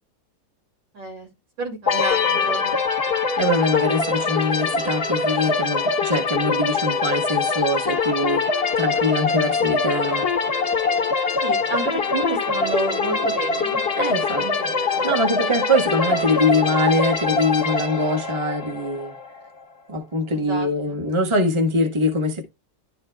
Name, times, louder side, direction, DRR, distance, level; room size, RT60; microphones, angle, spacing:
voice 1, 0.9-1.3 1.6-2.8 11.4-15.1 20.3-21.0, right 2 dB, 80° right, 3.1 m, -30 dB
sound 1, 1.9-19.5, left 4 dB, 40° left, 1.0 m, -23 dB
voice 2, 3.4-10.3 14.0-14.4 14.8-19.1 19.9-22.4, left 1 dB, 20° right, 1.3 m, -23 dB
11.5 x 5.0 x 2.3 m
omnidirectional pair, 1.9 m